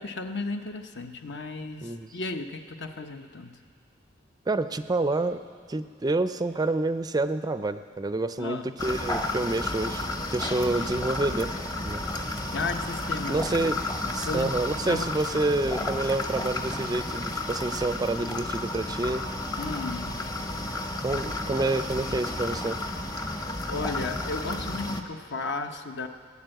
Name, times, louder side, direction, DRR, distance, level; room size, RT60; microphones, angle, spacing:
voice 1, 0.0-3.6 8.4-8.7 12.5-13.8 14.2-14.6 14.9-15.1 19.6-20.2 22.1-22.2 23.6-26.1, left 3 dB, 65° left, 6 dB, 0.9 m, -34 dB
voice 2, 4.5-5.4 5.7-11.5 11.8-12.0 13.3-13.8 14.2-19.3 21.0-22.8, right 2 dB, 20° right, 11 dB, 0.4 m, -28 dB
sound 1, 8.8-25.0, left 2 dB, 20° left, 0.8 m, -32 dB
18.0 x 9.8 x 7.8 m, 2.1 s
head